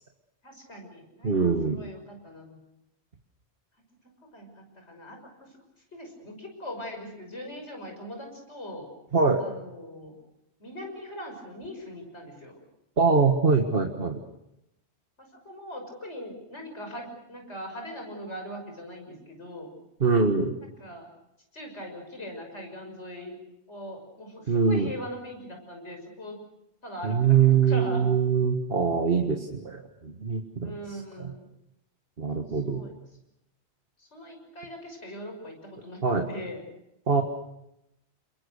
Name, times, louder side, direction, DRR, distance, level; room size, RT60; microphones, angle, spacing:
voice 1, 0.4-2.6 4.3-5.5 5.9-8.9 9.4-10.1 10.6-12.6 15.2-19.7 20.8-21.1 21.5-23.4 23.7-26.4 26.8-27.4 27.6-28.1 30.6-31.5 32.7-32.9 34.0-36.0 36.3-36.6, equal, 90° left, 3 dB, 6.5 m, -41 dB
voice 2, 1.2-1.8 9.1-9.4 13.0-14.2 20.0-20.6 24.5-24.9 27.0-31.3 32.2-32.8 36.0-36.3 37.1-37.2, right 5 dB, 55° right, 3 dB, 1.8 m, -23 dB
28.5 x 22.0 x 6.6 m, 0.87 s
omnidirectional pair, 1.1 m